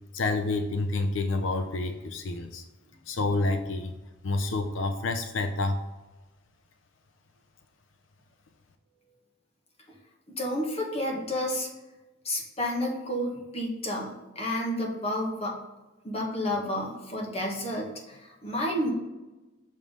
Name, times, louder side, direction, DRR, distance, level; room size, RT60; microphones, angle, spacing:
voice 1, 0.1-2.6 3.1-3.9 4.2-5.8, left 2 dB, 85° left, 8 dB, 0.5 m, -28 dB
voice 2, 10.4-11.7 12.2-15.6 16.0-18.9, left 1 dB, 35° left, -1 dB, 1.6 m, -30 dB
6.3 x 5.4 x 3.7 m, 1.1 s
head